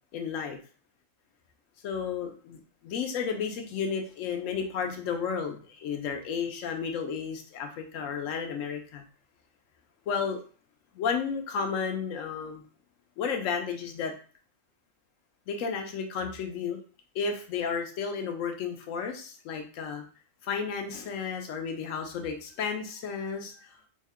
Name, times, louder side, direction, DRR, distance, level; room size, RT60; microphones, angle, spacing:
voice 1, 0.1-0.6 1.8-9.0 10.1-10.4 10.9-12.6 13.2-14.1 15.5-16.8 17.1-20.0 20.4-23.8, left 6 dB, 85° left, 4 dB, 1.0 m, -32 dB
3.5 x 2.1 x 3.5 m, 0.40 s
omnidirectional pair, 1.3 m